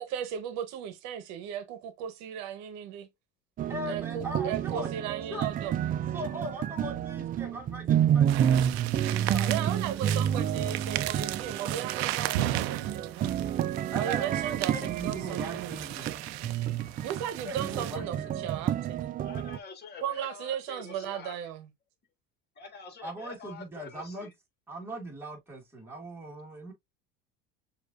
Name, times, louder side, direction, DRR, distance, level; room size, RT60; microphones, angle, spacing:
voice 1, 0.0-3.1 3.9-5.8 9.5-13.5 13.9-16.2 17.0-19.2 20.0-21.7, right 9 dB, 65° right, 1.0 m, -36 dB
sound 1, 3.6-19.6, right 10 dB, 30° right, 0.4 m, -30 dB
voice 2, 3.7-5.1 5.3-5.5 6.1-8.7 9.3-10.0 13.9-16.1 17.4-18.5 23.0-24.3 24.7-26.7, right 1 dB, 5° right, 1.8 m, -40 dB
sound 2, 8.3-18.0, right 14 dB, 85° right, 0.5 m, -36 dB
voice 3, 19.2-21.4 22.6-24.3, left 5 dB, 35° left, 1.6 m, -46 dB
6.4 x 2.7 x 2.4 m
supercardioid pair, 110°, 30 cm